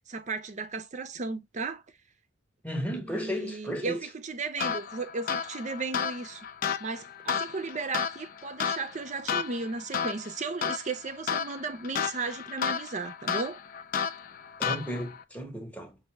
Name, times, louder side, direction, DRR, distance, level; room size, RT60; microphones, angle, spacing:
voice 1, 0.1-1.8 3.1-6.5 6.8-13.6, right 4 dB, 35° right, 0.6 m, -35 dB
voice 2, 2.6-4.1 14.6-16.0, equal, 5° left, 1.0 m, -34 dB
sound 1, 4.6-15.2, left 7 dB, 45° left, 0.4 m, -33 dB
5.3 x 2.6 x 3.2 m
head